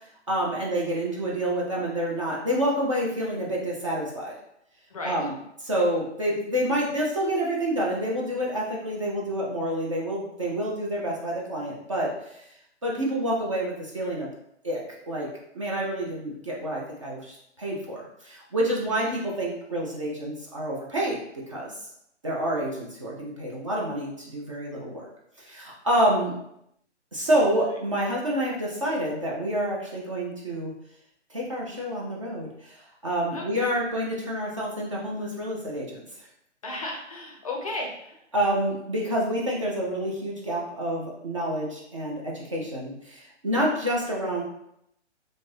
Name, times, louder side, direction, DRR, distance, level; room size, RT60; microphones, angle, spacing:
voice 1, 0.3-4.4 5.0-5.3 5.6-12.5 12.8-14.3 14.6-21.7 22.2-25.1 25.4-26.4 27.1-30.7 31.3-36.3 38.3-44.4, right 1 dB, 30° right, -3 dB, 0.4 m, -28 dB
voice 2, 4.9-5.3 18.8-18.9 33.3-33.7 36.6-38.2, left 2 dB, 30° left, 0 dB, 0.4 m, -35 dB
2.6 x 2.5 x 3.1 m, 0.78 s
hypercardioid pair, 140°, 36 cm